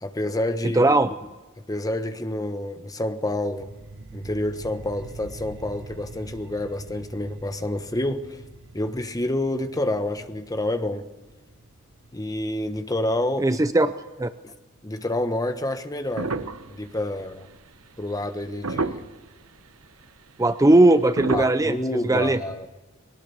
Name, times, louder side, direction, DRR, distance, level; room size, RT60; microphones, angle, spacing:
voice 1, 0.0-0.8 1.7-3.7 4.1-8.4 8.7-11.1 12.1-13.6 14.4-14.5 14.8-17.5 18.0-19.1 21.3-22.7, left 1 dB, 15° left, 1.3 m, -28 dB
voice 2, 0.7-1.1 13.4-13.9 14.2-14.3 20.4-21.8 22.1-22.4, right 2 dB, 15° right, 0.6 m, -18 dB
sound 1, 3.4-14.4, right 2 dB, 60° right, 1.2 m, -44 dB
sound 2, 16.2-17.5 18.2-18.3 18.6-19.3 20.0-20.1 21.2-21.5, right 3 dB, 75° right, 1.1 m, -29 dB
21.5 x 18.5 x 7.0 m
head